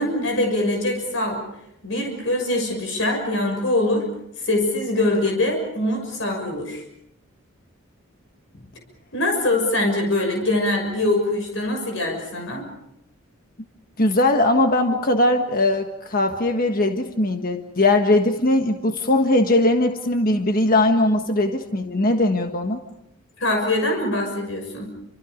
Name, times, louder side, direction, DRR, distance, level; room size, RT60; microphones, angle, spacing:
voice 1, 0.0-1.4 1.8-4.1 4.4-6.8 9.1-12.7 23.4-24.9, left 1 dB, 60° left, 2 dB, 6.4 m, -23 dB
voice 2, 14.0-22.8, left 2 dB, 45° left, 5 dB, 1.6 m, -20 dB
29.5 x 27.0 x 5.2 m, 0.80 s
head